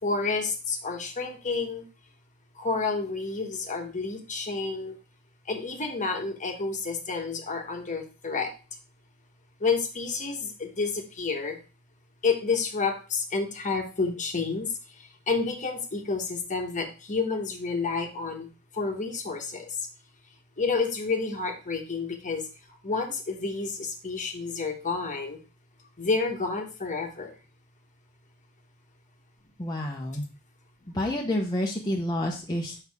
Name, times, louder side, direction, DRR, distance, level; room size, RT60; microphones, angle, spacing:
voice 1, 0.0-1.8 2.5-5.0 5.5-8.5 9.6-11.6 12.2-18.5 18.7-19.8 20.6-22.5 22.8-25.4 26.0-27.3, left 4 dB, 35° left, 4 dB, 1.2 m, -30 dB
voice 2, 29.6-30.2 30.9-32.8, left 1 dB, 20° left, -2 dB, 0.8 m, -29 dB
6.4 x 5.6 x 3.5 m, 0.33 s
head